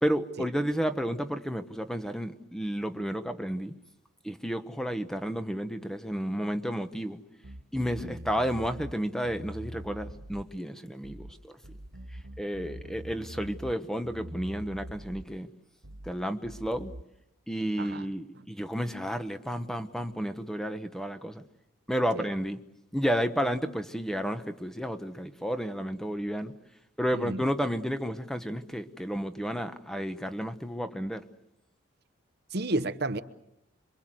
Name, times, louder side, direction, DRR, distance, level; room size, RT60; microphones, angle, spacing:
voice 1, 0.0-3.7 4.2-7.2 7.7-11.6 12.1-15.5 16.0-16.9 17.5-21.4 21.9-22.6 22.9-26.5 27.0-31.2, equal, ahead, 1.1 m, -31 dB
sound 1, 7.4-9.0 9.2-10.5 11.0-11.4 11.6-13.8 14.0-15.3 15.8-16.2 16.4-17.0, equal, 85° right, 2.1 m, -43 dB
voice 2, 32.5-33.2, right 2 dB, 50° right, 1.0 m, -31 dB
26.5 x 24.5 x 7.8 m
head